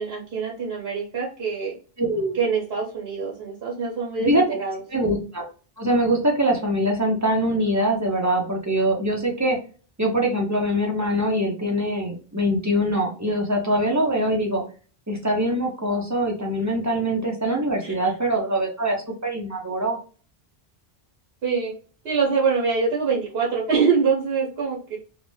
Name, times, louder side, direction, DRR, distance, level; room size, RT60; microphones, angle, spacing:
voice 1, 0.0-1.7 2.4-4.8 17.8-17.9 21.4-21.7 22.0-25.0, right 5 dB, 70° right, -4 dB, 1.0 m, -24 dB
voice 2, 2.0-2.4 4.2-4.4 4.9-5.4 5.8-9.6 10.0-14.6 15.1-20.0, right 1 dB, 25° right, 0 dB, 0.5 m, -23 dB
2.5 x 2.1 x 3.0 m, 0.38 s
omnidirectional pair, 1.1 m